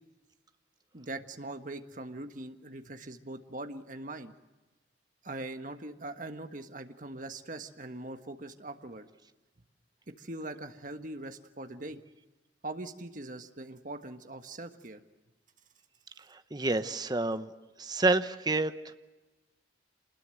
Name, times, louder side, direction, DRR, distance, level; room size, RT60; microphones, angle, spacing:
voice 1, 0.9-4.3 5.2-9.1 10.1-12.0 12.6-15.0, right 2 dB, 45° right, 7 dB, 1.5 m, -41 dB
voice 2, 16.3-17.5 17.8-18.9, right 2 dB, 25° right, 10 dB, 0.9 m, -29 dB
27.0 x 20.5 x 7.8 m, 1.1 s
head